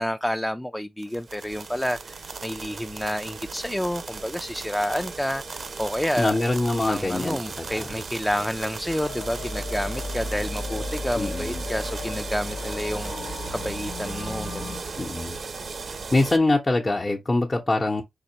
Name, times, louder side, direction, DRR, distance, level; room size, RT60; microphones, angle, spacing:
voice 1, 0.0-6.4 6.9-14.8, equal, 5° left, 0.3 m, -29 dB
sound 1, 1.0-16.4, right 4 dB, 60° right, 0.5 m, -36 dB
voice 2, 6.2-7.9 11.2-11.6 15.0-15.4 16.1-18.0, left 2 dB, 35° left, 0.8 m, -24 dB
sound 2, 8.9-14.8, left 2 dB, 80° left, 0.5 m, -34 dB
4.1 x 2.9 x 2.8 m
cardioid pair, 50°, 0 cm